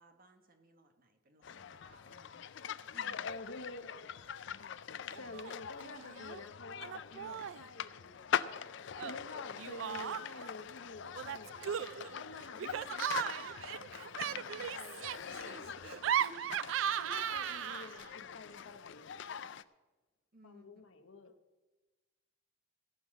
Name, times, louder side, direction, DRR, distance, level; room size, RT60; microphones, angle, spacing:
voice 1, 0.0-2.5 2.9-3.3 5.1-5.4 14.2-14.8 20.3-20.7, right 1 dB, 45° right, 6 dB, 1.4 m, -63 dB
sound 1, 1.4-19.6, left 8 dB, 60° left, 0.4 m, -43 dB
voice 2, 3.0-4.2 5.2-8.3 9.0-11.5 12.1-13.5 14.2-15.8 16.2-19.1 20.4-21.4, left 3 dB, 80° left, 8 dB, 1.1 m, -49 dB
Laughter, 5.1-5.5 5.8-6.4 6.8-7.7 9.0-10.5 11.1-18.1, right 9 dB, 70° right, 0.3 m, -37 dB
17.0 x 5.8 x 7.3 m, 1.2 s
head